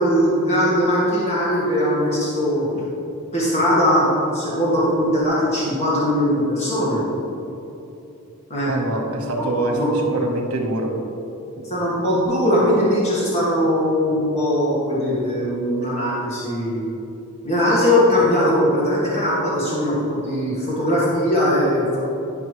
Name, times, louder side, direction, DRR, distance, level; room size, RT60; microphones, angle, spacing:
voice 1, 0.0-2.8 3.3-7.0 8.5-8.7 9.7-10.2 11.6-16.8 17.4-22.0, equal, 30° left, -7 dB, 1.6 m, -20 dB
voice 2, 8.7-9.8 10.1-10.9 11.6-11.7, right 2 dB, 80° right, 1 dB, 1.2 m, -24 dB
10.5 x 5.7 x 3.2 m, 3.0 s
head